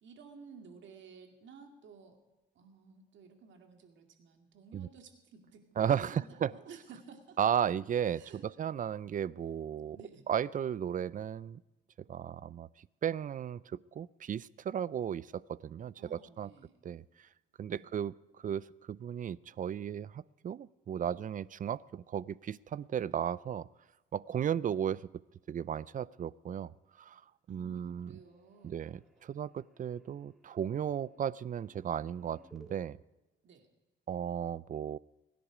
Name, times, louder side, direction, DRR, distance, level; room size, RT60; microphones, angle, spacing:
voice 1, 0.0-2.2 2.5-7.4 8.1-8.5 9.9-10.2 16.0-16.8 17.7-17.9 27.5-28.8 29.2-29.3 33.4-33.7, right 5 dB, 70° right, 5 dB, 2.3 m, -54 dB
voice 2, 5.8-6.5 7.4-10.0 10.3-11.6 12.1-16.5 16.8-17.0 17.6-23.7 24.1-25.1 25.5-27.2 27.5-28.1 28.6-33.0 34.1-35.0, right 9 dB, 40° right, 21 dB, 0.4 m, -35 dB
sound 1, 27.6-32.8, right 2 dB, ahead, 3.0 m, -64 dB
23.5 x 10.5 x 5.0 m, 1.1 s
cardioid pair, 90°, 20 cm